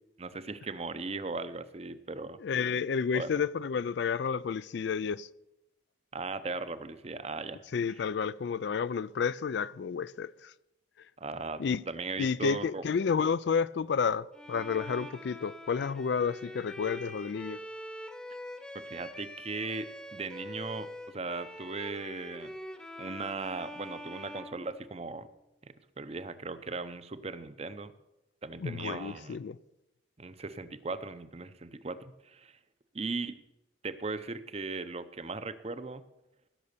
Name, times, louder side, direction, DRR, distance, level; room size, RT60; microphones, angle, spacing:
voice 1, 0.2-2.4 3.1-3.3 6.1-7.6 11.2-12.8 18.9-22.5 23.0-25.3 25.6-27.9 28.4-29.4 30.2-32.6 32.9-33.4 33.8-36.0, right 3 dB, 30° right, 0.6 m, -38 dB
voice 2, 2.4-5.3 7.7-10.5 11.6-11.8 12.2-17.6 28.6-29.6, left 6 dB, 60° left, 0.3 m, -31 dB
Bowed string instrument, 14.3-25.3, left 1 dB, 5° left, 0.9 m, -44 dB
16.0 x 6.9 x 6.7 m
head